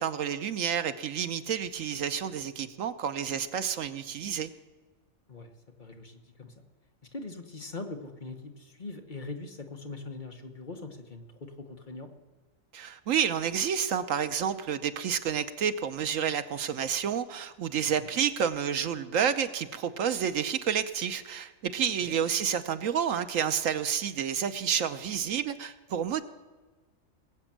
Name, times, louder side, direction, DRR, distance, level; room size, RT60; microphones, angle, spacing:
voice 1, 0.0-4.5 12.7-26.2, right 8 dB, 80° right, 10 dB, 1.2 m, -30 dB
voice 2, 5.8-6.5 7.1-12.1 17.8-18.1 21.8-22.2, left 3 dB, 35° left, 4 dB, 1.4 m, -42 dB
20.0 x 8.0 x 7.4 m, 1.3 s
omnidirectional pair, 1.4 m